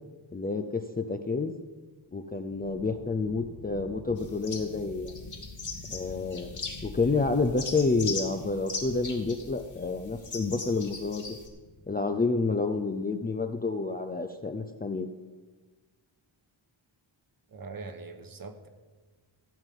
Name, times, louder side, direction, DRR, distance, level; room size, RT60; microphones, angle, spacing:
voice 1, 0.3-1.5 2.1-5.2 5.9-6.5 6.8-11.2 11.9-15.1, left 3 dB, 20° left, 6 dB, 0.4 m, -29 dB
sound 1, 2.4-11.9, left 3 dB, 55° left, 1.3 m, -47 dB
sound 2, 4.2-4.8 5.1-7.1 7.3-11.5, left 4 dB, 40° left, 2.1 m, -39 dB
voice 2, 17.5-18.7, right 3 dB, 45° right, 7 dB, 1.2 m, -42 dB
15.0 x 5.3 x 9.2 m, 1.3 s
wide cardioid pair, 165°, 47 cm